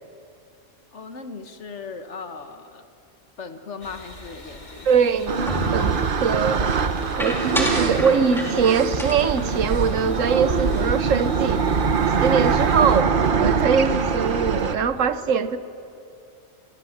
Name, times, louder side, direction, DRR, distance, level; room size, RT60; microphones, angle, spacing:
voice 1, 0.9-2.8 3.4-5.2, left 4 dB, 60° left, 1.7 m, -38 dB
sound 1, 3.8-13.0, left 1 dB, 35° left, 2.2 m, -42 dB
voice 2, 4.8-6.7 7.2-11.6 12.2-15.6, right 6 dB, 75° right, 1.3 m, -22 dB
sound 2, 5.3-14.8, right 5 dB, 45° right, 1.0 m, -23 dB
sound 3, 5.5-6.0 7.2-8.7 9.0-10.7 11.0-11.2 11.5-12.0, equal, ahead, 3.5 m, -31 dB
27.0 x 22.0 x 7.3 m
omnidirectional pair, 1.4 m